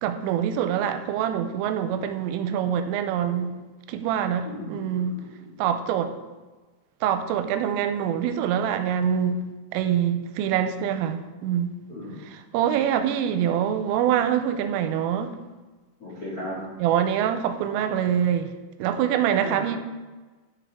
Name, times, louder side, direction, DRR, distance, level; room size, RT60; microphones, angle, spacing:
voice 1, 0.0-3.5 3.9-5.2 5.6-6.1 7.0-9.4 9.7-11.8 12.3-15.3 16.8-18.5 18.8-19.8, right 9 dB, 85° right, 9 dB, 3.1 m, -25 dB
voice 2, 4.4-5.6 11.9-12.3 16.0-16.6 19.4-19.8, left 1 dB, 80° left, -5 dB, 0.8 m, -37 dB
10.5 x 7.5 x 3.5 m, 1.2 s
omnidirectional pair, 5.8 m